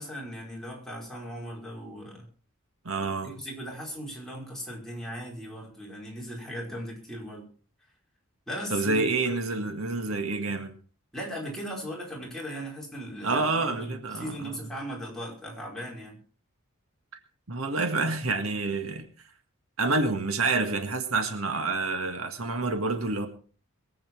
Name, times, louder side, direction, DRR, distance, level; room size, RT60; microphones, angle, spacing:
voice 1, 0.0-2.3 3.2-7.5 8.5-9.4 11.1-16.2, equal, ahead, -3 dB, 4.8 m, -38 dB
voice 2, 2.9-3.3 8.7-10.7 13.2-14.6 17.5-19.1 19.8-23.3, right 3 dB, 80° right, 7 dB, 1.9 m, -28 dB
23.0 x 8.6 x 4.6 m, 0.41 s
head